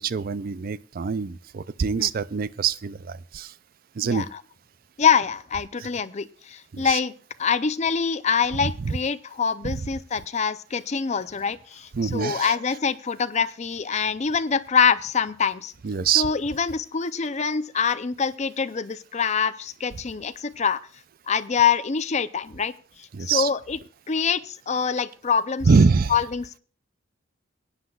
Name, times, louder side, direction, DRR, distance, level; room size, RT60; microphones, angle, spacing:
voice 1, 0.0-3.5 4.0-4.3 6.7-7.0 8.6-8.9 9.7-9.8 11.9-12.6 15.8-16.3 23.1-23.5 25.7-26.1, right 5 dB, 45° right, 17 dB, 0.4 m, -24 dB
voice 2, 4.0-4.4 5.0-7.1 7.4-15.7 16.1-20.8 21.3-22.7 23.0-23.8 24.1-25.7 26.1-26.6, left 6 dB, 35° left, 13 dB, 0.5 m, -25 dB
21.5 x 9.8 x 2.4 m, 0.42 s
head